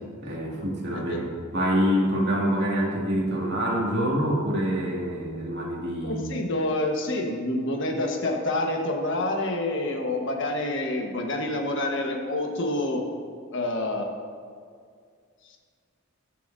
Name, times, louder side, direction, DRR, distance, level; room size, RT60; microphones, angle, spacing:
voice 1, 0.2-6.4, equal, 55° right, -3 dB, 2.3 m, -26 dB
voice 2, 6.0-13.0 13.5-14.1, left 1 dB, 60° left, 1 dB, 1.4 m, -27 dB
20.5 x 7.2 x 2.7 m, 2.1 s
head